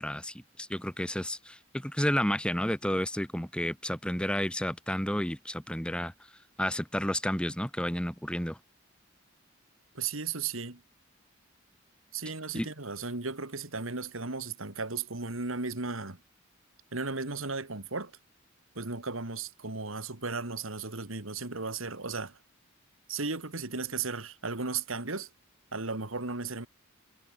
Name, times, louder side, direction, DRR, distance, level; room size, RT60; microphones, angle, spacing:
voice 1, 0.0-6.1 6.6-8.6 12.5-12.7, equal, 5° left, 3.2 m, -31 dB
voice 2, 9.9-10.8 12.1-16.2 16.9-18.1 18.7-22.4 23.1-25.3 25.7-26.7, right 4 dB, 85° right, 2.7 m, -35 dB
head